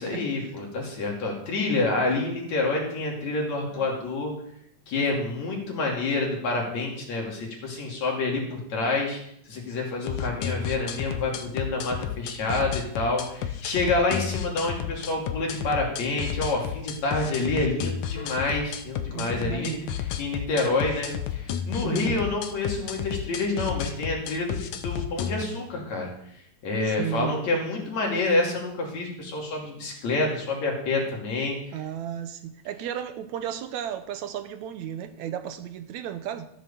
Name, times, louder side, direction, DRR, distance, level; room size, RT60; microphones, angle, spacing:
voice 1, 0.0-4.3 4.9-9.2 9.5-19.7 20.2-26.1 26.6-31.6, left 2 dB, 65° left, 0 dB, 3.9 m, -28 dB
sound 1, 10.0-25.4, left 9 dB, 80° left, 2.3 m, -32 dB
voice 2, 19.1-20.0 21.8-22.2 26.8-27.4 31.7-36.5, right 10 dB, 75° right, 10 dB, 2.0 m, -34 dB
13.5 x 7.9 x 6.9 m, 0.73 s
omnidirectional pair, 3.4 m